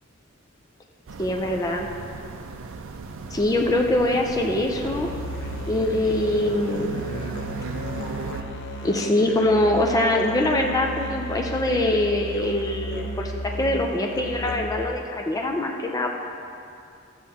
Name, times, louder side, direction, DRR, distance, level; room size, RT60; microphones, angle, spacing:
sound 1, 1.1-8.4, right 4 dB, 65° right, 0.5 m, -36 dB
voice 1, 1.2-1.9 3.3-5.1 5.7-7.0 8.8-16.2, left 1 dB, 15° left, 1 dB, 0.5 m, -23 dB
Musical instrument, 4.8-14.9, equal, 60° left, 0.8 m, -34 dB
13.0 x 7.6 x 2.8 m, 2.6 s
head